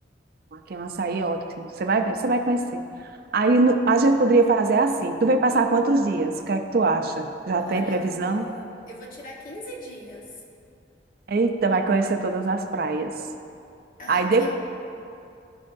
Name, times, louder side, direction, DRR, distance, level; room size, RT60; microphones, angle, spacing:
voice 1, 0.5-2.8 3.3-8.5 11.3-13.1 14.1-14.5, right 3 dB, 60° right, 6 dB, 0.5 m, -22 dB
voice 2, 7.6-10.2 14.0-14.5, left 1 dB, 50° left, -1 dB, 1.2 m, -38 dB
15.0 x 5.4 x 2.6 m, 2.5 s
head